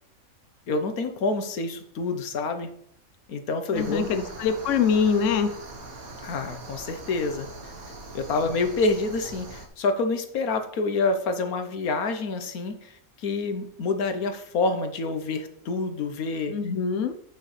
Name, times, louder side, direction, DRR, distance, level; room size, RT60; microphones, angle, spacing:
voice 1, 0.7-2.7 3.3-4.1 6.2-7.7 8.1-16.5, left 3 dB, 90° left, 8 dB, 1.5 m, -27 dB
voice 2, 3.7-5.5 16.5-17.1, left 6 dB, 65° left, 8 dB, 1.0 m, -24 dB
sound 1, 3.7-9.7, right 2 dB, 75° right, 1.8 m, -41 dB
8.6 x 8.3 x 3.3 m, 0.66 s
omnidirectional pair, 1.5 m